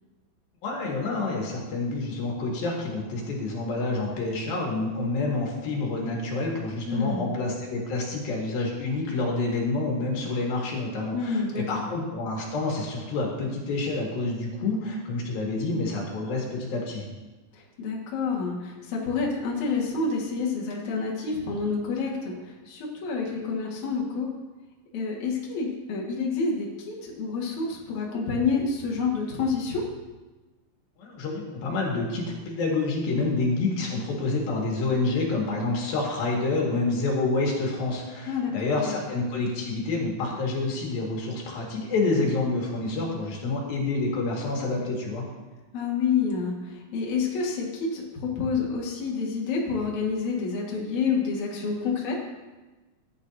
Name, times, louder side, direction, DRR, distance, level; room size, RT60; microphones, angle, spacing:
voice 1, 0.6-17.0 31.0-45.3, left 3 dB, 75° left, -2 dB, 3.6 m, -28 dB
voice 2, 6.9-7.3 11.1-11.9 17.5-24.3 24.9-29.8 38.3-39.0 45.7-52.2, left 4 dB, 55° left, -3 dB, 2.9 m, -28 dB
15.0 x 10.5 x 2.7 m, 1.2 s
omnidirectional pair, 4.3 m